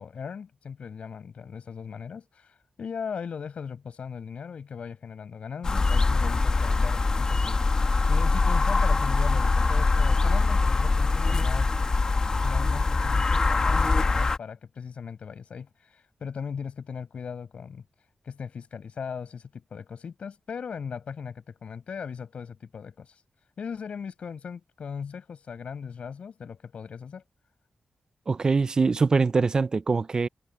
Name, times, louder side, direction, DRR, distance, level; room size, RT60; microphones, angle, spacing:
voice 1, 0.0-7.8 8.1-11.7 12.4-17.8 18.2-23.1 23.6-27.2, left 6 dB, 65° left, 7.1 m, -38 dB
sound 1, 5.6-14.4, left 3 dB, 35° left, 1.4 m, -23 dB
voice 2, 28.3-30.3, right 4 dB, 35° right, 0.5 m, -23 dB
wide cardioid pair, 165°, 2 cm